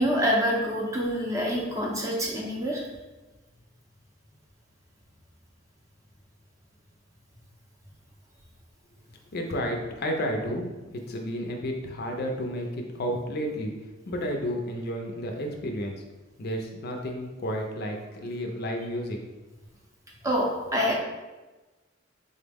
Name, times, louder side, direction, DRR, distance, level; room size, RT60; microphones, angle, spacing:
voice 1, 0.0-2.8 20.2-20.9, equal, 15° right, -2 dB, 0.6 m, -26 dB
voice 2, 9.3-10.7 11.1-13.7 14.1-16.0 16.4-19.2, equal, 50° left, 2 dB, 0.4 m, -31 dB
3.9 x 2.0 x 3.4 m, 1.1 s
head